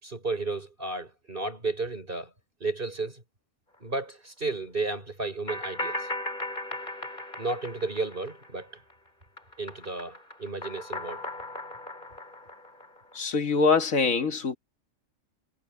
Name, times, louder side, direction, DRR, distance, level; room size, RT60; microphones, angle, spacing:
voice 1, 0.0-2.3 2.6-3.2 3.8-6.1 7.4-8.7 9.6-11.3, right 3 dB, 40° right, 5.9 m, -33 dB
sound 1, 5.5-8.9 9.2-13.2, left 1 dB, 35° left, 4.6 m, -37 dB
voice 2, 13.1-14.6, left 4 dB, 85° left, 2.1 m, -24 dB
omnidirectional pair, 1.4 m